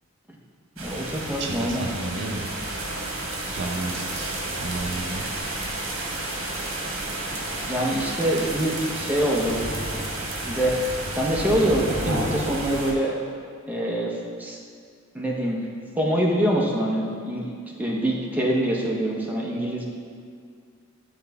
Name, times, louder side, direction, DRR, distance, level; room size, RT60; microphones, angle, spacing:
voice 1, 0.8-1.8 7.6-9.6 10.4-10.8 11.2-13.1 13.7-14.6 15.1-15.7 16.0-17.5 17.8-19.9, right 1 dB, 10° right, -3 dB, 0.7 m, -25 dB
sound 1, 0.8-12.9, right 1 dB, 80° right, 1.1 m, -31 dB
voice 2, 1.4-2.5 3.5-5.4, right 2 dB, 60° right, 1 dB, 0.5 m, -32 dB
9.7 x 3.9 x 3.4 m, 2.2 s
head